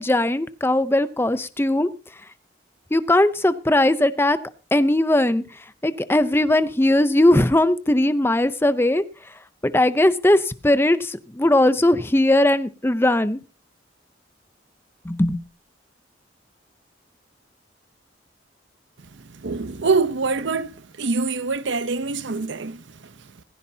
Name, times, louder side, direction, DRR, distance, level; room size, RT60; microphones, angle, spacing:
voice 1, 0.0-1.9 2.9-4.4 4.7-9.3 9.6-13.4 15.0-15.4, left 1 dB, 15° left, 0.6 m, -19 dB
voice 2, 19.3-23.1, right 4 dB, 85° right, 0.8 m, -25 dB
16.0 x 15.0 x 2.8 m
head